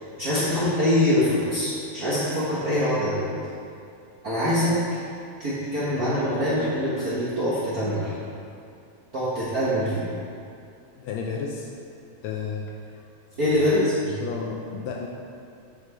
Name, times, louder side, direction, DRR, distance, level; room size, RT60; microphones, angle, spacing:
voice 1, 0.2-3.3 4.2-5.0 5.4-8.1 9.1-10.1 13.4-14.2, left 1 dB, 50° right, -10 dB, 1.1 m, -24 dB
voice 2, 11.0-11.7 12.2-13.0 14.1-15.1, left 5 dB, 80° left, 0 dB, 1.6 m, -32 dB
8.3 x 5.2 x 4.3 m, 2.5 s
omnidirectional pair, 3.4 m